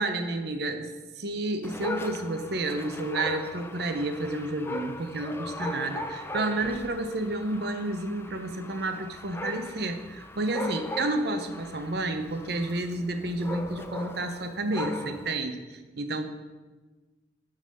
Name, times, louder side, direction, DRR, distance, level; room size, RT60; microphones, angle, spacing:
voice 1, 0.0-15.6 16.0-16.3, right 2 dB, 65° right, 7 dB, 0.8 m, -30 dB
Dog, 1.6-15.4, left 2 dB, 15° left, 0.5 m, -38 dB
11.5 x 4.0 x 5.4 m, 1.2 s
head